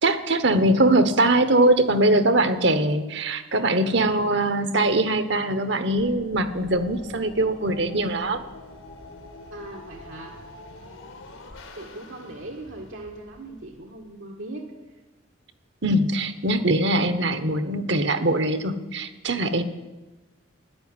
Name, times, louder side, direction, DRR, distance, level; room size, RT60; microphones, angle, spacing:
voice 1, 0.0-8.4 15.8-19.6, right 1 dB, 60° right, 11 dB, 1.1 m, -22 dB
sound 1, 5.9-14.1, left 2 dB, 90° left, 2.1 m, -45 dB
voice 2, 9.5-10.4 11.8-14.7, right 2 dB, 80° right, 0 dB, 1.7 m, -39 dB
12.5 x 10.5 x 9.7 m, 1.1 s
head